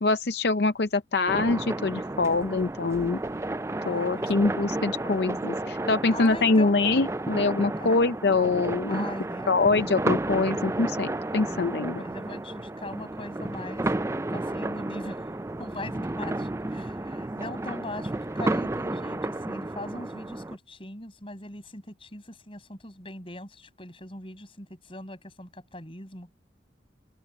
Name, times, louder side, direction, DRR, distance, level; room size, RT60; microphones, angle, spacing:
voice 1, 0.0-3.2 3.9-9.1 9.5-12.0, left 3 dB, 60° left, 0.6 m, -24 dB
sound 1, 1.3-20.6, right 2 dB, 15° right, 0.4 m, -32 dB
voice 2, 3.9-4.8 6.1-6.7 7.7-8.1 8.9-10.0 11.4-13.9 14.3-15.2 15.6-26.3, left 1 dB, 30° left, 7.0 m, -41 dB
open air
head